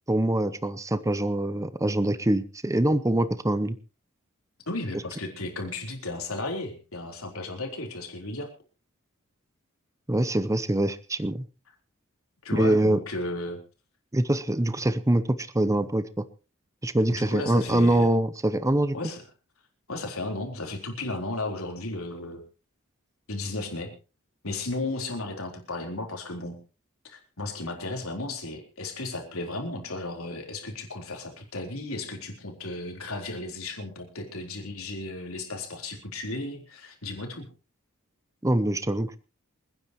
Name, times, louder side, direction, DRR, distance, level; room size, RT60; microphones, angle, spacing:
voice 1, 0.1-3.8 10.1-11.4 12.5-13.0 14.1-16.2 16.8-19.0 38.4-39.2, right 1 dB, 15° right, 14 dB, 0.7 m, -24 dB
voice 2, 4.7-8.5 12.4-13.6 17.1-18.1 18.9-19.2 19.9-22.4 23.3-23.9 24.4-26.6 27.0-37.5, left 2 dB, 80° left, 2 dB, 4.0 m, -34 dB
28.0 x 10.0 x 3.1 m, 0.33 s
head